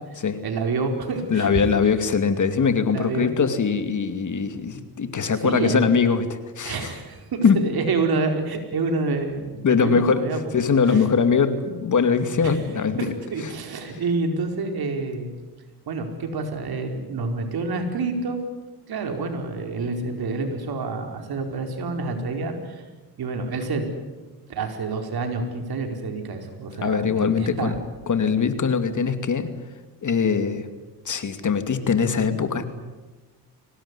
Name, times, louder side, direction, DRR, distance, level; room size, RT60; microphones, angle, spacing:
voice 1, 0.0-1.6 2.9-3.3 5.4-5.9 6.6-10.4 10.8-11.0 12.4-12.6 13.0-15.3 15.9-18.4 18.9-22.8 23.2-23.9 24.5-27.8, right 3 dB, 65° right, 5 dB, 4.9 m, -28 dB
voice 2, 1.3-6.9 7.4-7.6 9.6-10.2 10.5-13.1 26.8-27.8 28.1-29.5 30.0-30.7 31.0-32.6, left 6 dB, 45° left, 9 dB, 2.5 m, -22 dB
24.0 x 19.0 x 9.9 m, 1.2 s
cardioid pair, 90°, 41 cm